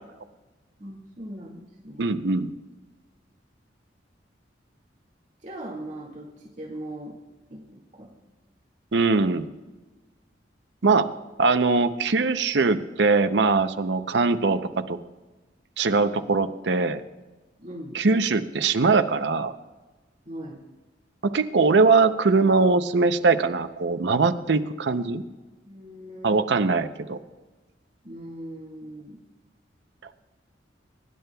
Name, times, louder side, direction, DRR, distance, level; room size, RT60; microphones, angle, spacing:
voice 1, 0.8-2.3 5.4-7.1 7.5-8.1 17.6-18.0 20.3-20.6 25.7-26.5 28.0-29.2, right 1 dB, 40° right, -3 dB, 2.0 m, -40 dB
voice 2, 2.0-2.5 8.9-9.5 10.8-11.1 11.4-15.0 15.8-17.0 17.9-19.5 21.2-25.2 26.2-27.2, right 4 dB, 70° right, 9 dB, 0.7 m, -21 dB
23.0 x 10.5 x 2.3 m, 1.2 s
head